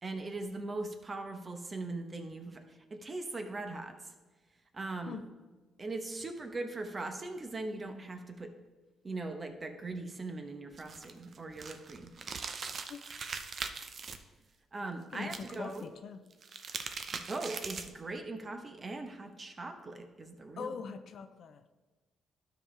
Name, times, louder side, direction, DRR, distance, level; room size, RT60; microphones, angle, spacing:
voice 1, 0.0-3.9 4.7-5.2 5.8-8.5 9.0-12.1 14.7-15.9 17.1-20.8, right 2 dB, 30° right, 6 dB, 1.0 m, -40 dB
sound 1, 10.7-14.2 15.2-15.8 16.3-18.0, right 5 dB, 50° right, 0.6 m, -41 dB
voice 2, 15.1-16.2 20.6-21.7, left 6 dB, 65° left, 9 dB, 0.6 m, -42 dB
12.5 x 5.1 x 3.3 m, 1.3 s
cardioid pair, 90°, 0 cm